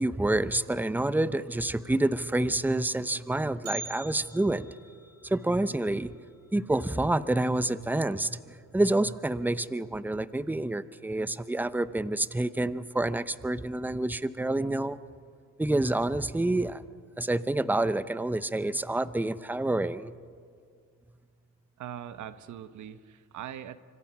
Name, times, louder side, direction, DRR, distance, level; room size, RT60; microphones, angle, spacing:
voice 1, 0.0-4.7 5.2-6.2 6.5-15.0 15.6-16.8 17.2-20.1, right 2 dB, 5° right, 15 dB, 0.7 m, -28 dB
Bell, 3.6-7.7 8.0-8.1 8.6-8.7 9.5-9.6 10.3-10.6 11.0-11.1, right 3 dB, 50° right, 7.8 m, -46 dB
voice 2, 21.8-23.8, right 10 dB, 75° right, 12 dB, 1.1 m, -41 dB
25.5 x 25.5 x 6.0 m, 2.1 s
cardioid pair, 90°, 30 cm